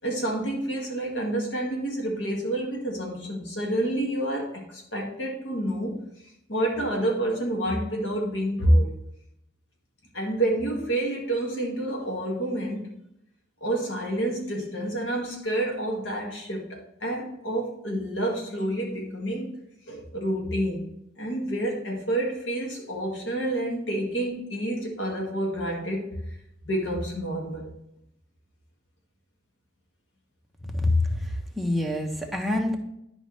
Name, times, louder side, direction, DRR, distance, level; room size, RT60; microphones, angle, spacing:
voice 1, 0.0-6.0 6.5-8.9 10.1-12.8 13.6-19.5 19.9-20.9 21.2-26.2 26.6-27.7, right 1 dB, 75° left, -1 dB, 2.0 m, -28 dB
voice 2, 31.6-32.8, left 2 dB, ahead, 0 dB, 1.0 m, -25 dB
11.0 x 5.3 x 3.3 m, 0.79 s
head